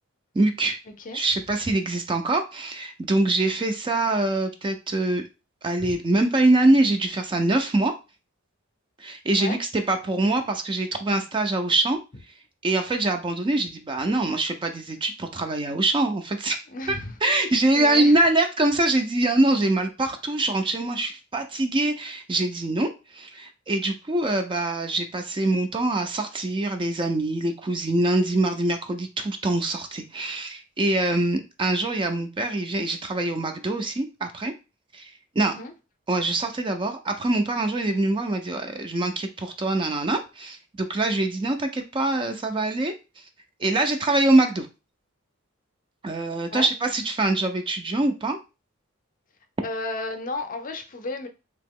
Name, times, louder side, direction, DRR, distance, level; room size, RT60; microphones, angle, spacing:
voice 1, 0.3-0.8 1.1-5.3 5.6-7.9 9.0-12.0 12.6-16.6 16.9-17.0 17.2-34.5 34.9-35.1 35.4-35.6 36.1-42.9 43.6-44.7 46.0-48.4, right 2 dB, 25° right, 0.4 m, -24 dB
voice 2, 16.7-18.2 35.4-35.7 46.5-46.7 49.6-51.3, left 3 dB, 40° left, 0.6 m, -33 dB
2.9 x 2.8 x 3.6 m
head